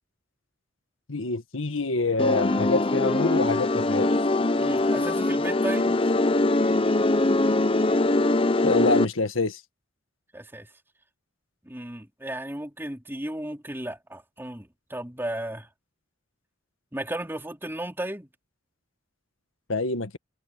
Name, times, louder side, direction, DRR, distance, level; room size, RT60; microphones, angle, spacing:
voice 1, 1.1-4.2 8.6-9.6 19.7-20.2, left 3 dB, 85° left, 1.6 m, -26 dB
sound 1, 2.2-9.1, left 2 dB, 25° left, 0.6 m, -22 dB
voice 2, 4.6-6.0 10.3-10.7 11.6-15.7 16.9-18.3, right 1 dB, 10° right, 3.8 m, -34 dB
head